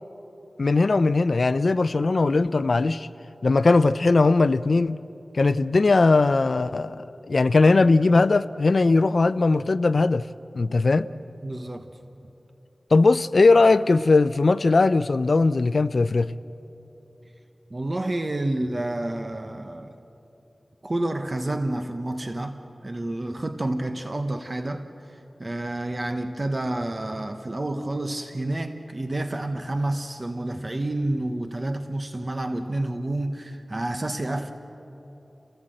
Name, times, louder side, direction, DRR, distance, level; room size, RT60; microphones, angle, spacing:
voice 1, 0.6-3.1 3.4-5.0 5.3-10.3 10.5-11.1 12.9-16.3, left 3 dB, 65° left, 0.5 m, -19 dB
voice 2, 11.4-11.9 17.7-19.9 20.8-34.5, right 1 dB, 35° right, 1.1 m, -29 dB
29.5 x 18.0 x 7.8 m
wide cardioid pair, 80°, 0 cm